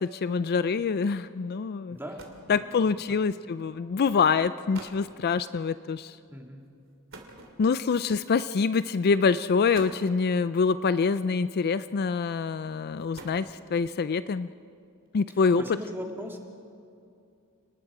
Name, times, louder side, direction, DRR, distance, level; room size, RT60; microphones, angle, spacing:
voice 1, 0.0-2.0 2.5-6.2 7.6-14.5 15.1-15.6, left 5 dB, 45° left, 14 dB, 0.4 m, -25 dB
sound 1, 1.6-1.7 1.9-2.6 3.5-3.8 4.4-4.5 4.7-5.1 7.1-8.0 8.9-9.0 9.5-10.2 11.5-12.0 12.8-13.8, right 3 dB, 60° right, 2.8 m, -47 dB
voice 2, 1.9-3.2 6.3-6.7 15.3-16.4, equal, 10° right, 2 dB, 2.1 m, -40 dB
29.5 x 19.5 x 4.9 m, 2.5 s
head